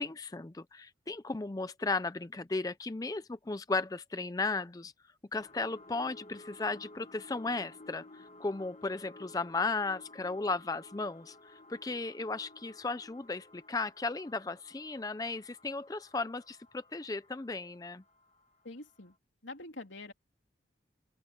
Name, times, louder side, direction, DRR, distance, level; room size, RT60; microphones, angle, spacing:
voice 1, 0.0-4.9 5.3-18.0, left 3 dB, 20° left, 0.4 m, -35 dB
sound 1, 5.4-18.6 19.0-19.1, left 2 dB, 35° left, 1.5 m, -55 dB
voice 2, 18.6-19.1 19.4-20.1, left 2 dB, 85° left, 3.4 m, -45 dB
open air
head